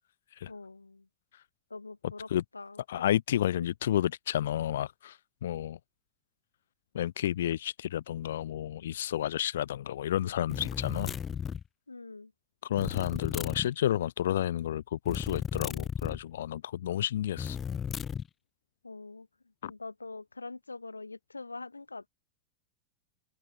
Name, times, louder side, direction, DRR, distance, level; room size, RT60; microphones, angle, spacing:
voice 1, 0.5-1.1 1.7-3.2 3.6-3.7 11.9-12.3 18.8-22.1, left 3 dB, 80° left, 3.9 m, -44 dB
voice 2, 2.9-5.8 6.9-11.2 12.6-17.6 19.6-19.7, left 11 dB, 60° left, 1.4 m, -31 dB
sound 1, 10.5-11.7 12.8-13.7 15.0-16.2 17.4-18.3, left 7 dB, 20° left, 1.4 m, -34 dB
figure-of-eight pair, 90°, 0 cm